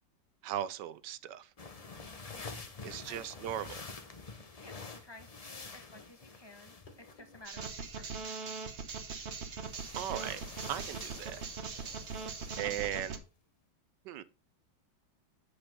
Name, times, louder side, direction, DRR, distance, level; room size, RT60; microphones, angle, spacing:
voice 1, 0.4-1.5 2.8-3.8 9.9-10.4 10.7-11.4 12.6-13.2 14.0-14.2, right 11 dB, 75° right, 1.1 m, -37 dB
sound 1, 1.6-7.5 9.6-12.6, left 4 dB, 35° left, 0.6 m, -48 dB
voice 2, 2.3-3.7 4.6-8.4, left 2 dB, 15° left, 0.9 m, -55 dB
sound 2, 3.1-3.7 5.1-5.4 6.9-7.4 7.7-7.8 9.0-9.1, left 2 dB, 55° left, 2.6 m, -58 dB
sound 3, 7.4-13.2, right 5 dB, 45° right, 1.1 m, -41 dB
8.0 x 5.5 x 5.2 m
omnidirectional pair, 2.1 m